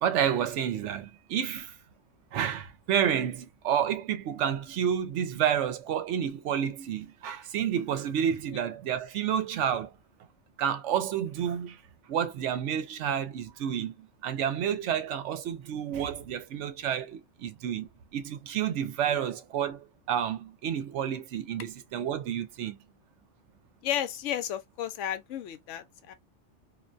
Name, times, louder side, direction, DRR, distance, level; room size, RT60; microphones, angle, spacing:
voice 1, 0.0-1.7 2.3-9.9 10.6-11.8 12.1-22.8, right 9 dB, 75° right, 0.9 m, -30 dB
voice 2, 23.8-26.1, left 11 dB, 80° left, 0.9 m, -33 dB
2.5 x 2.2 x 2.4 m
omnidirectional pair, 1.3 m